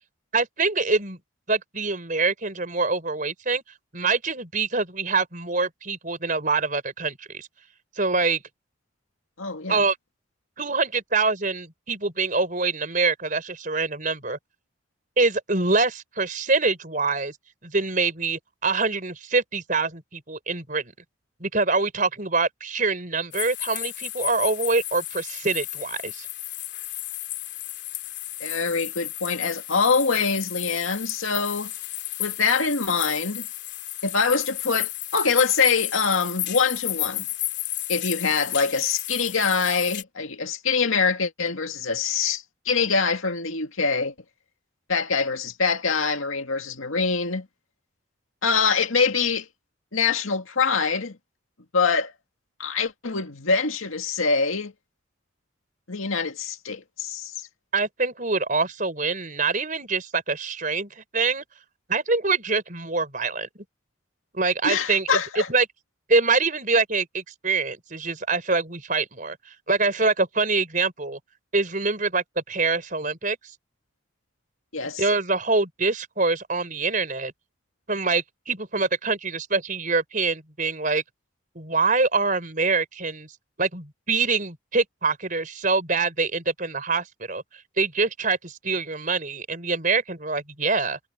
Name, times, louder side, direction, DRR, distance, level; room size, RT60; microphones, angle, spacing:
voice 1, 0.3-1.2 1.5-3.6 3.9-7.5 8.0-8.4 9.7-10.0 10.6-14.4 15.2-17.4 17.6-20.9 21.4-26.3 57.7-61.4 61.9-63.5 64.3-65.7 66.1-69.4 69.7-71.2 71.5-73.4 75.0-77.3 77.9-81.0 81.5-83.3 83.6-87.4 87.8-91.0, right 3 dB, 40° right, 4.6 m, -25 dB
voice 2, 9.4-9.8 28.4-31.7 32.2-33.5 34.0-37.3 37.9-44.1 44.9-47.5 48.4-49.5 49.9-51.2 51.7-52.1 52.6-54.7 55.9-57.3 64.6-65.5 74.7-75.0, left 5 dB, 85° left, 2.2 m, -24 dB
sound 1, 23.3-40.0, left 15 dB, 55° left, 3.4 m, -32 dB
head